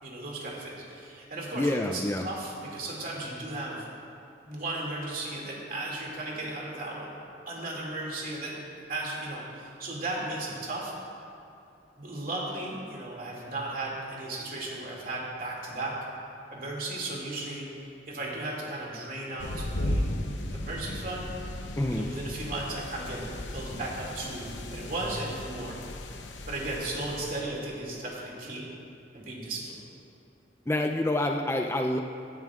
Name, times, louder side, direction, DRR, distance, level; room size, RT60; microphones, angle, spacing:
voice 1, 0.0-3.9 4.4-7.1 7.5-8.6 8.9-10.9 12.0-16.0 16.5-17.7 18.1-20.2 20.5-21.3 21.9-23.3 23.5-25.8 26.5-28.7 29.1-29.8, right 2 dB, 50° right, -3 dB, 2.4 m, -35 dB
voice 2, 1.5-2.2 21.8-22.1 30.7-32.0, left 1 dB, 15° left, 3 dB, 0.4 m, -27 dB
sound 1, 19.4-27.4, left 1 dB, 75° left, 0.8 m, -36 dB
16.5 x 11.0 x 2.4 m, 2.7 s
head